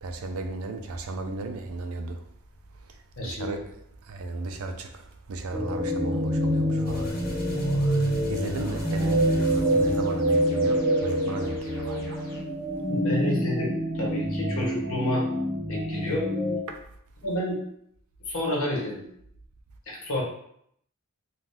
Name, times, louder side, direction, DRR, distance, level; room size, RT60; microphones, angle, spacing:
voice 1, 0.0-2.2 3.2-3.6 4.1-4.9 5.3-7.1 8.3-12.2 16.7-16.8, right 2 dB, 75° right, 0.4 m, -34 dB
voice 2, 3.2-3.5 12.9-15.3 15.7-16.3 17.2-17.6 18.3-19.0 19.9-20.2, left 1 dB, 65° left, 0.9 m, -29 dB
sound 1, 5.5-16.6, equal, 25° right, 0.7 m, -26 dB
sound 2, 6.8-12.4, left 1 dB, 40° left, 0.7 m, -41 dB
2.6 x 2.3 x 3.3 m
head